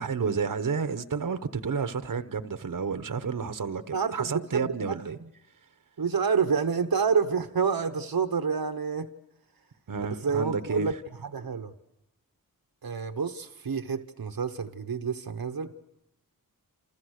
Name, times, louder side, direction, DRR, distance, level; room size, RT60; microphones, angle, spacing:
voice 1, 0.0-5.2 9.9-11.0, right 5 dB, 65° right, 1.0 m, -31 dB
voice 2, 3.9-5.0 6.0-9.1 10.2-10.9 11.2-11.7 12.8-15.7, right 5 dB, 85° right, 1.1 m, -28 dB
28.5 x 28.5 x 6.5 m
wide cardioid pair, 80°, 35 cm